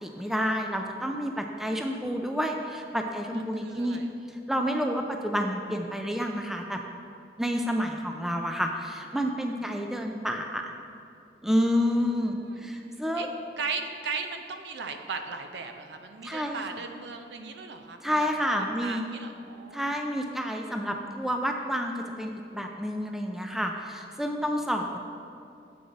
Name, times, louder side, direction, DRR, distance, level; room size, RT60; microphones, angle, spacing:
voice 1, 0.0-4.0 4.5-6.8 7.4-10.7 11.4-13.3 16.2-16.8 18.0-19.0 19.7-25.0, equal, ahead, 3 dB, 0.3 m, -29 dB
voice 2, 3.3-4.1 12.4-12.7 13.1-13.3 13.6-18.2 18.5-20.2, right 4 dB, 80° right, 6 dB, 0.5 m, -37 dB
7.7 x 5.2 x 3.9 m, 2.6 s
head